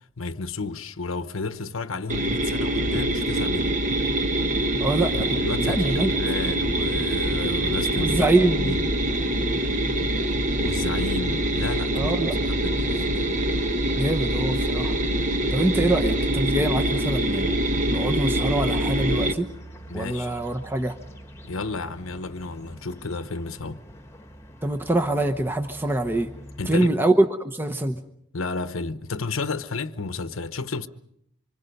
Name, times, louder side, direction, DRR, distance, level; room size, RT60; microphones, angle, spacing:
voice 1, 0.2-3.7 5.1-8.2 8.6-8.9 10.5-13.3 19.9-20.4 21.4-23.8 26.6-26.9 28.3-30.9, left 3 dB, 85° left, 1.0 m, -32 dB
sound 1, 2.1-19.3, right 1 dB, 35° right, 1.1 m, -24 dB
voice 2, 4.8-6.1 8.0-8.7 11.9-12.4 14.0-15.0 15.5-17.5 17.9-19.5 19.9-20.9 24.6-26.3 26.7-28.0, right 2 dB, 10° right, 0.9 m, -24 dB
sound 2, 18.8-26.7, equal, 15° left, 1.4 m, -44 dB
26.0 x 24.5 x 5.3 m
head